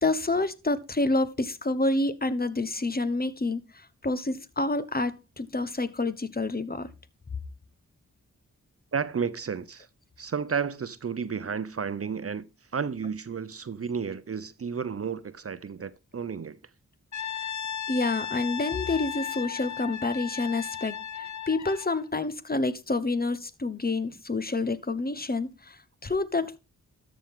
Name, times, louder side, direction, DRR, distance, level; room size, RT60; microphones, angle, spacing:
voice 1, 0.0-6.9 17.3-17.5 17.9-26.6, left 2 dB, 30° left, 1.1 m, -28 dB
voice 2, 8.9-9.9 10.2-12.5 12.7-16.6, right 6 dB, 45° right, 0.7 m, -32 dB
Brass instrument, 17.1-22.0, left 8 dB, 60° left, 0.7 m, -35 dB
13.0 x 6.2 x 3.7 m
cardioid pair, 45°, 32 cm